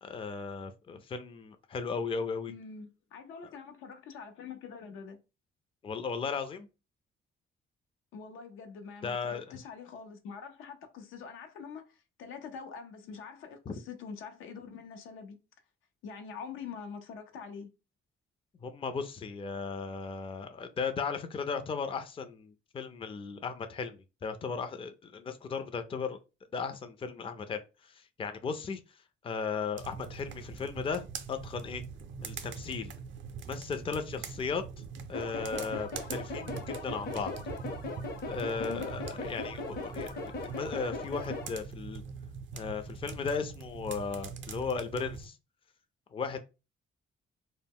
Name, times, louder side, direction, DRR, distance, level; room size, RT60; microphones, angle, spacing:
voice 1, 0.0-2.5 5.8-6.7 9.0-9.6 13.7-13.8 18.6-26.2 26.5-28.8 29.2-31.8 32.2-32.9 33.5-34.6 35.1-37.3 38.2-42.0 42.5-45.4 46.1-46.4, left 5 dB, 25° left, 0.4 m, -36 dB
voice 2, 2.5-5.2 8.1-15.4 16.0-17.7 38.6-38.9, left 6 dB, 85° left, 0.5 m, -45 dB
sound 1, 29.8-45.3, right 5 dB, 70° right, 0.5 m, -43 dB
sound 2, 35.1-41.5, left 3 dB, 50° left, 0.7 m, -39 dB
2.1 x 2.0 x 3.5 m
cardioid pair, 90°, 20 cm